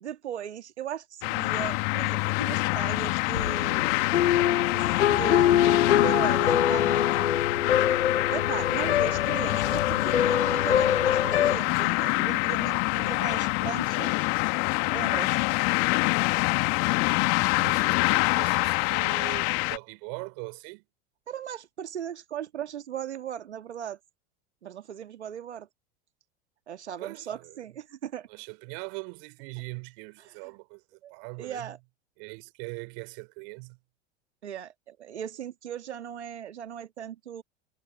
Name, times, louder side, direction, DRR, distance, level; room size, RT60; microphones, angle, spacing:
voice 1, 0.0-4.0 4.7-7.1 8.3-14.1 14.9-15.4 21.3-24.0 24.6-25.7 26.7-28.3 30.2-30.3 31.0-31.1 31.4-31.8 34.4-37.4, right 9 dB, 75° right, 1.9 m, -38 dB
sound 1, 1.2-19.8, left 31 dB, 50° left, 2.0 m, -26 dB
sound 2, 3.3-11.6, left 10 dB, 80° left, 1.5 m, -24 dB
voice 2, 16.8-20.8 27.0-27.6 28.3-30.8 31.1-31.7 32.2-33.8, right 40 dB or more, 55° right, 5.2 m, -41 dB
figure-of-eight pair, 85°, 34 cm